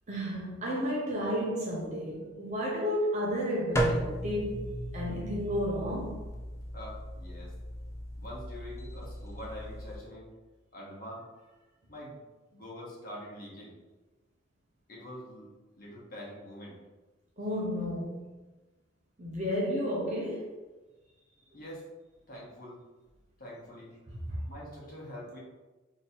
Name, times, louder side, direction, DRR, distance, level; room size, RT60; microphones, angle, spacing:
voice 1, 0.1-6.2 17.4-18.2 19.2-20.5 24.3-24.5, equal, 40° right, 0.6 m, -32 dB
sound 1, 3.7-9.9, right 1 dB, 15° left, 0.4 m, -35 dB
voice 2, 6.7-7.5 8.2-10.4 10.7-11.3 11.9-12.2 12.5-13.8 14.9-15.5 15.8-16.8 21.5-21.8 22.3-22.8 23.4-24.0 24.5-25.4, equal, 50° left, 1.2 m, -44 dB
3.1 x 2.7 x 4.3 m
head